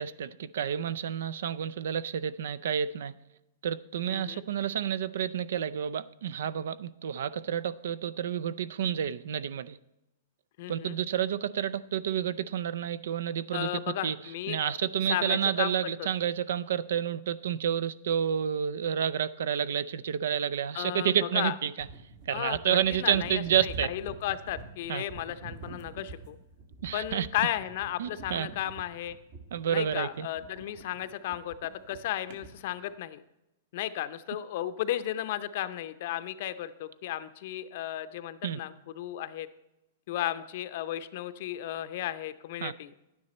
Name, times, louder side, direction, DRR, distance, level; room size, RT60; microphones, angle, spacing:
voice 1, 0.0-3.1 3.6-9.8 10.7-13.7 14.0-14.2 14.5-21.7 22.3-23.9 24.9-25.0 26.8-27.3 28.0-28.5 29.5-30.3 38.4-38.6 42.6-42.7, right 9 dB, 75° right, 0.5 m, -30 dB
voice 2, 4.1-4.4 10.6-11.0 13.5-14.8 15.1-15.9 20.7-21.5 22.3-26.4 26.9-29.2 29.7-33.2 33.7-39.5 40.1-42.9, left 12 dB, 55° left, 0.6 m, -34 dB
sound 1, 21.8-32.9, right 4 dB, 50° right, 1.8 m, -46 dB
11.0 x 9.6 x 4.2 m
hypercardioid pair, 150°, 0 cm